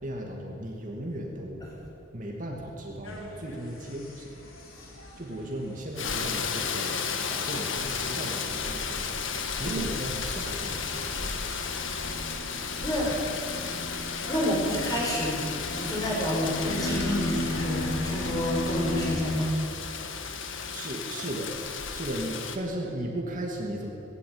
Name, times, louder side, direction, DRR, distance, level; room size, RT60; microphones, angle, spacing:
voice 1, 0.0-1.7 2.1-4.3 5.2-9.1 9.4-11.4 20.7-21.5 21.9-23.9, right 1 dB, 40° right, 0 dB, 2.6 m, -36 dB
sound 1, 3.0-19.2, left 1 dB, 90° left, 3.8 m, -38 dB
Rain, 6.0-22.6, left 6 dB, 65° left, 1.6 m, -34 dB
voice 2, 12.8-13.2 14.3-15.4 15.8-19.6, equal, 20° left, -3 dB, 6.2 m, -29 dB
18.0 x 17.0 x 8.9 m, 2.6 s
head